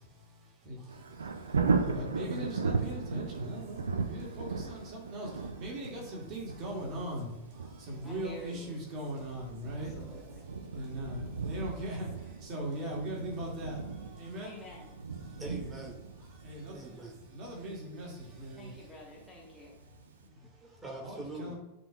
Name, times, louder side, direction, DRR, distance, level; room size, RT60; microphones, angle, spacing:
Thunder, 0.9-19.7 20.1-20.2, right 4 dB, 70° right, 0.6 m, -37 dB
voice 1, 1.9-5.3 5.6-7.3 7.9-9.9 10.7-12.1 12.5-13.8 14.2-14.6 16.4-16.8 17.3-18.1 18.4-18.7 21.0-21.6, right 1 dB, 35° right, -2 dB, 2.1 m, -39 dB
voice 2, 8.0-8.8 9.7-10.5 14.4-14.9 18.6-19.7, equal, 10° left, -3 dB, 1.4 m, -49 dB
voice 3, 15.4-16.1 16.7-17.3 18.3-18.4 20.4-21.6, right 2 dB, 15° right, -2 dB, 2.0 m, -44 dB
10.5 x 4.4 x 2.3 m, 1.0 s
figure-of-eight pair, 90°, 0 cm